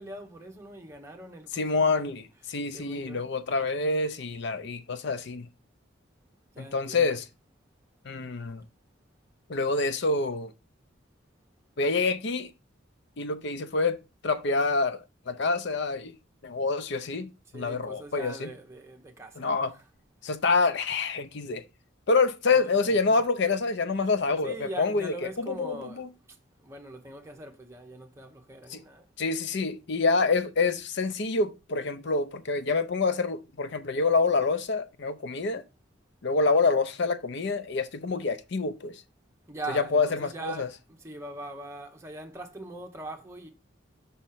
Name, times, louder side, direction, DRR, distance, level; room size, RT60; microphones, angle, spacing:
voice 1, 0.0-2.1 2.7-3.2 6.5-7.1 17.5-19.5 22.5-23.2 24.4-26.1 26.6-29.1 39.5-43.5, right 2 dB, 15° right, 0.9 m, -42 dB
voice 2, 1.5-5.5 6.6-7.3 8.0-8.6 9.5-10.5 11.8-12.5 13.2-14.0 14.2-16.1 16.4-18.5 19.4-19.7 20.2-21.6 22.1-26.1 28.7-28.8 29.2-35.6 36.2-39.0 39.7-40.7, left 3 dB, 60° left, 0.6 m, -27 dB
5.6 x 3.1 x 5.6 m
head